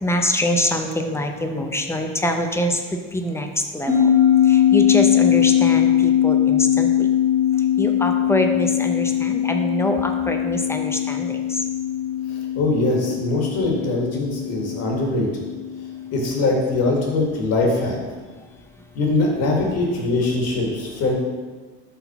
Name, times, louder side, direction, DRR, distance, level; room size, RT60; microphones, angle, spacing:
voice 1, 0.0-3.9 4.4-7.1 7.8-11.6, left 1 dB, 10° left, 4 dB, 0.6 m, -24 dB
sound 1, 3.9-16.6, left 10 dB, 10° right, 1.7 m, -20 dB
voice 2, 12.3-15.4 16.1-18.0 18.9-21.1, left 2 dB, 55° left, -1 dB, 1.7 m, -22 dB
5.8 x 3.7 x 5.9 m, 1.4 s
cardioid pair, 125°, 30 cm